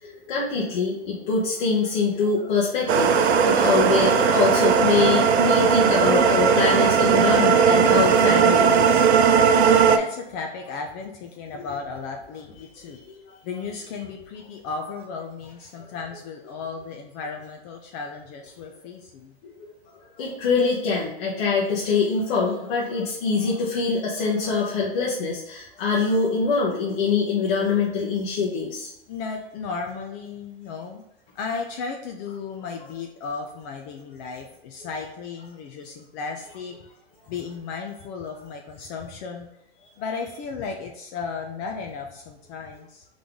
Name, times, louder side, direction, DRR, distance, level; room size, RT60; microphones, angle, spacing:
voice 1, 0.0-9.0 11.5-11.6 13.1-13.2 19.4-19.5 20.2-28.9, left 4 dB, 55° left, -6 dB, 1.2 m, -24 dB
sound 1, 2.9-10.0, right 6 dB, 90° right, 0.6 m, -18 dB
voice 2, 10.0-13.0 13.4-19.3 29.1-31.0 31.3-36.8 37.3-39.5 40.0-43.0, left 5 dB, 40° left, 2 dB, 0.6 m, -35 dB
4.0 x 3.2 x 3.6 m, 0.84 s
hypercardioid pair, 115°, 31 cm